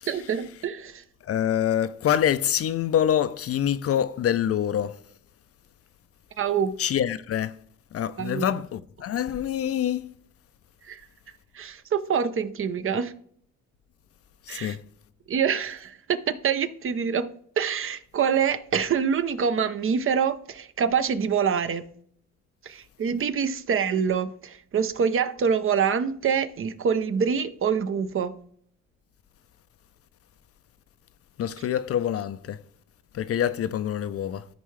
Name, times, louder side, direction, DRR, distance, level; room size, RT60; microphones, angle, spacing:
voice 1, 0.1-1.0 6.4-6.8 8.2-8.5 10.9-11.0 11.5-13.1 14.5-14.8 15.3-17.3 17.6-21.9 22.6-28.4, right 7 dB, 45° right, 0.6 m, -25 dB
voice 2, 1.2-5.0 6.8-7.6 7.9-10.1 14.5-14.8 31.4-32.6 33.1-34.5, left 10 dB, 50° left, 0.5 m, -26 dB
13.5 x 4.6 x 3.2 m
cardioid pair, 90°, 30 cm